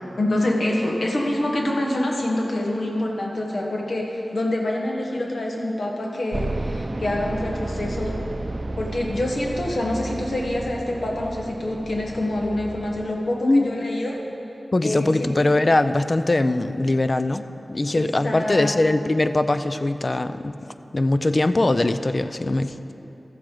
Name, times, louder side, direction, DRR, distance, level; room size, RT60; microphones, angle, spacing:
voice 1, 0.2-8.2 8.8-14.2 14.8-15.3 17.9-18.7, left 1 dB, 75° left, -1 dB, 1.3 m, -26 dB
sound 1, 6.3-13.1, right 2 dB, 45° right, 0.6 m, -32 dB
voice 2, 14.7-20.6 20.9-22.9, left 2 dB, 45° left, 10 dB, 0.4 m, -21 dB
13.0 x 7.7 x 3.8 m, 3.0 s
cardioid pair, 45°, 0 cm